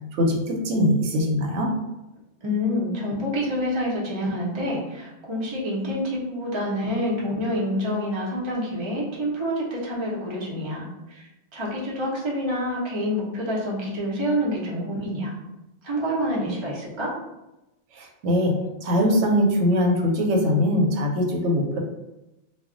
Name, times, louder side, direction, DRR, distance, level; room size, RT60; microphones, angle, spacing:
voice 1, 0.1-1.7 17.9-18.5 18.8-21.8, equal, 85° right, 2 dB, 0.9 m, -22 dB
voice 2, 2.4-11.2 11.5-15.3 15.8-17.1, equal, 30° right, -4 dB, 0.6 m, -27 dB
2.2 x 2.0 x 3.7 m, 0.96 s
omnidirectional pair, 1.2 m